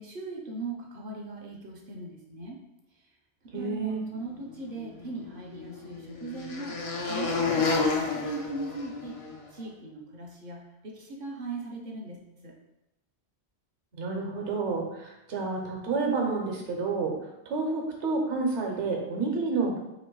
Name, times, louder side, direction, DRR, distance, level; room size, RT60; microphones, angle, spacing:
voice 1, 0.0-2.6 3.5-9.2 9.5-12.5, right 3 dB, 60° right, 0 dB, 0.7 m, -39 dB
voice 2, 3.5-4.0 14.0-17.1 17.5-19.8, right 4 dB, 75° right, 0 dB, 1.1 m, -29 dB
sound 1, 4.8-9.4, left 4 dB, 50° left, 0.4 m, -30 dB
3.0 x 2.9 x 4.5 m, 0.92 s
omnidirectional pair, 1.2 m